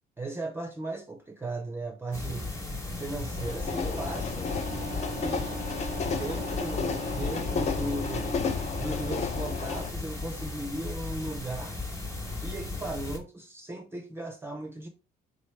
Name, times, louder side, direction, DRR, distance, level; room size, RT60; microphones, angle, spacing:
voice 1, 0.2-2.5 3.0-4.5 5.1-5.6 6.0-8.4 8.8-11.8 12.4-14.9, right 2 dB, 15° right, 0.5 m, -36 dB
sound 1, 2.1-13.2, left 2 dB, 15° left, 1.0 m, -36 dB
sound 2, 3.0-9.9, left 5 dB, 40° left, 0.5 m, -33 dB
Wind instrument woodwind instrument, 4.4-8.7, right 8 dB, 65° right, 0.4 m, -42 dB
4.0 x 3.0 x 3.2 m
cardioid pair, 110°, 17 cm